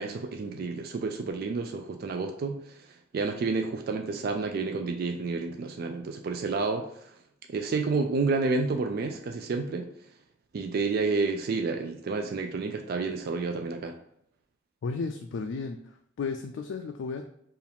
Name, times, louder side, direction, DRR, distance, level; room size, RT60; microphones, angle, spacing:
voice 1, 0.0-7.2 7.5-9.9 10.5-14.0, right 4 dB, 50° right, 5 dB, 0.3 m, -30 dB
voice 2, 14.8-17.2, left 4 dB, 70° left, 4 dB, 0.3 m, -34 dB
4.6 x 2.5 x 3.5 m, 0.71 s
head